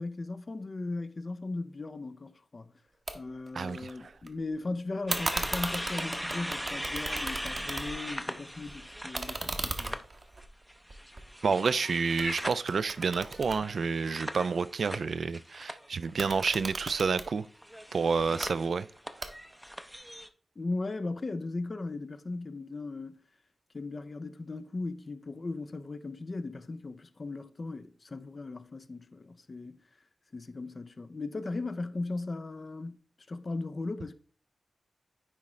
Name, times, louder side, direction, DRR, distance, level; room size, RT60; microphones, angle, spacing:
voice 1, 0.0-2.7 3.1-10.0 20.6-23.2 23.7-29.8 30.3-33.0 33.3-34.1, left 3 dB, 45° left, 0.5 m, -37 dB
sound 1, 3.1-3.2 3.5-4.3 5.1-8.2 8.5-11.8 12.2-14.4 16.0-17.3 18.2-18.5 19.2-19.7, right 3 dB, 45° right, 0.8 m, -37 dB
voice 2, 3.6-3.9 11.4-17.4 17.9-18.9, right 5 dB, 70° right, 0.3 m, -29 dB
sound 2, 5.1-10.0 10.4-16.1 16.3-16.7 17.6-20.3, equal, ahead, 0.5 m, -39 dB
9.7 x 3.7 x 3.2 m
wide cardioid pair, 85°, 0 cm